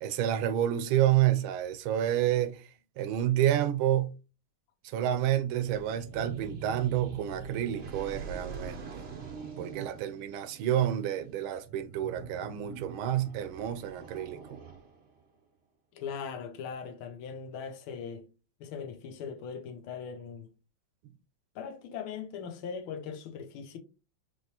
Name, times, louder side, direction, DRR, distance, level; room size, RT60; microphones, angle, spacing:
voice 1, 0.0-2.7 3.0-4.1 4.8-9.0 9.6-14.6, right 11 dB, 80° right, 1.4 m, -29 dB
sound 1, 5.6-15.2, right 6 dB, 60° right, 0.6 m, -43 dB
voice 2, 15.9-18.3 18.6-20.5 21.5-23.8, left 6 dB, 80° left, 1.6 m, -40 dB
5.4 x 3.2 x 2.9 m
omnidirectional pair, 2.3 m